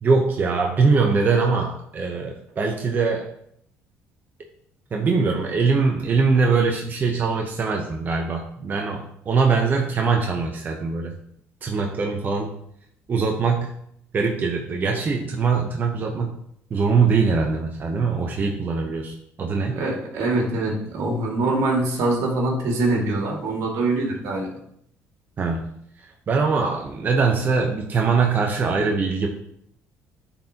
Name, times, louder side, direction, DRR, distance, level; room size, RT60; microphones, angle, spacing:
voice 1, 0.0-3.3 4.9-11.1 11.6-12.5 13.1-13.7 14.1-16.4 16.7-19.8 25.4-25.7 26.0-29.3, right 4 dB, 35° right, 1 dB, 0.8 m, -22 dB
voice 2, 19.8-24.5, right 2 dB, 75° right, -1 dB, 2.1 m, -23 dB
10.0 x 4.3 x 2.9 m, 0.73 s
cardioid pair, 100°, 5 cm